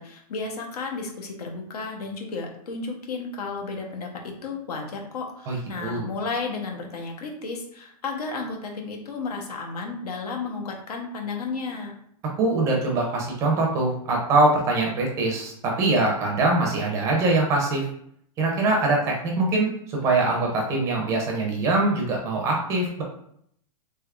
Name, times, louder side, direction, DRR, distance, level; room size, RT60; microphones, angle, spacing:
voice 1, 0.0-11.9, left 4 dB, 90° left, 2 dB, 0.9 m, -33 dB
voice 2, 5.5-6.1 12.4-17.9 18.4-23.0, right 2 dB, 15° right, 0 dB, 0.4 m, -23 dB
3.4 x 3.1 x 2.3 m, 0.69 s
supercardioid pair, 170°, 19 cm